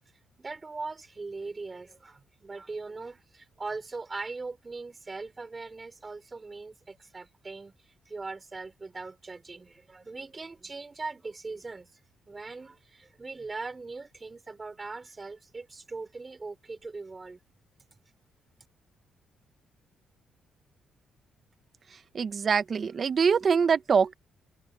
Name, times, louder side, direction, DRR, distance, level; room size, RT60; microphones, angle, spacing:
voice 1, 0.4-11.9 12.3-17.4, right 3 dB, 25° right, 5.4 m, -40 dB
voice 2, 22.1-24.1, right 6 dB, 45° right, 1.1 m, -24 dB
cardioid pair, 90°, 0 cm